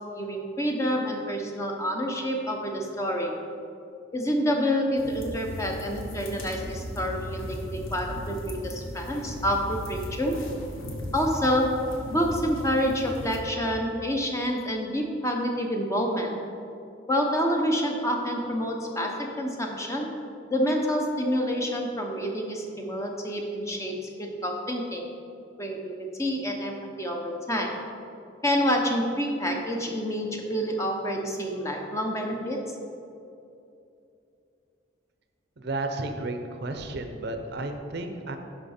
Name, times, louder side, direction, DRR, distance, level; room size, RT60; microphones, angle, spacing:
voice 1, 0.1-3.3 4.1-10.4 11.1-11.7 12.1-16.3 17.1-20.1 20.5-23.9 24.2-25.0 25.6-27.7 28.4-32.6, equal, 15° left, 1 dB, 0.8 m, -28 dB
sound 1, 5.0-13.4, equal, 85° left, 1.3 m, -37 dB
voice 2, 35.6-38.4, right 2 dB, 55° right, 6 dB, 0.6 m, -32 dB
10.5 x 5.6 x 4.3 m, 2.7 s
head